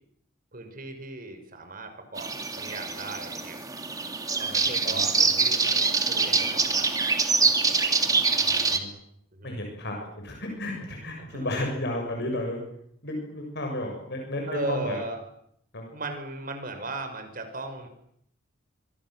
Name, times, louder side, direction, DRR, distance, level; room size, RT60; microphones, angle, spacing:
voice 1, 0.5-3.6 4.4-6.9 7.4-7.5 9.4-9.7 11.2-11.6 14.5-15.2 15.9-17.9, right 2 dB, 45° right, 7 dB, 5.8 m, -37 dB
sound 1, 2.2-8.8, right 4 dB, 20° right, 2.7 m, -25 dB
voice 2, 4.5-5.0 8.4-8.9 9.4-12.6 13.0-15.0 15.7-15.8, left 1 dB, 55° left, 2 dB, 7.1 m, -33 dB
28.0 x 24.5 x 7.7 m, 0.71 s
head